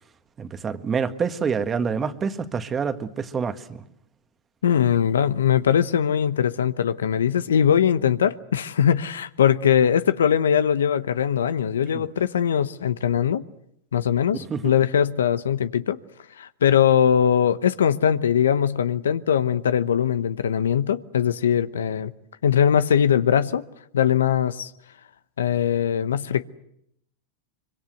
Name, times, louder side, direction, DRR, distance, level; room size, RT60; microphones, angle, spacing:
voice 1, 0.4-3.8 11.9-12.0 14.5-14.7, right 6 dB, 25° right, 1.6 m, -27 dB
voice 2, 4.6-13.4 13.9-16.0 16.4-22.1 22.4-23.6 23.9-24.7 25.4-26.4, left 8 dB, 90° left, 0.9 m, -21 dB
24.5 x 23.5 x 7.9 m
hypercardioid pair, 110°, 0 cm